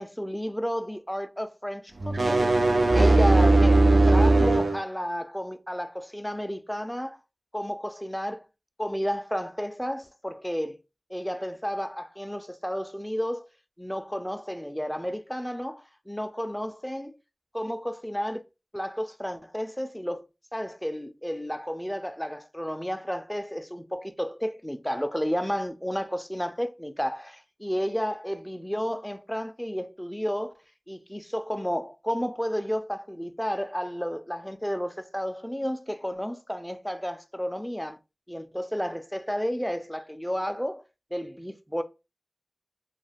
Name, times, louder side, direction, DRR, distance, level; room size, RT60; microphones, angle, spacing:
voice 1, 0.0-2.5 2.9-7.2 7.5-8.4 8.8-10.8 11.1-13.4 13.8-17.2 17.5-18.4 18.7-20.2 20.5-30.5 30.9-38.0 38.3-40.8 41.1-41.8, equal, 5° left, 0.3 m, -32 dB
sound 1, 2.0-4.8, right 2 dB, 85° right, 0.5 m, -19 dB
2.2 x 2.2 x 3.3 m
wide cardioid pair, 70°, 0 cm